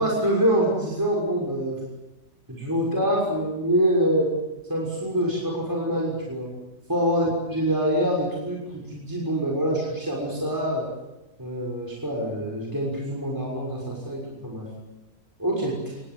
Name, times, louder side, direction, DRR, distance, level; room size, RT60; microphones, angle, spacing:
voice 1, 0.0-1.8 2.5-4.3 4.7-6.5 6.9-10.9 11.4-14.7 15.4-15.8, equal, 10° right, -3 dB, 6.2 m, -25 dB
28.5 x 21.5 x 7.8 m, 1.0 s
omnidirectional pair, 1.7 m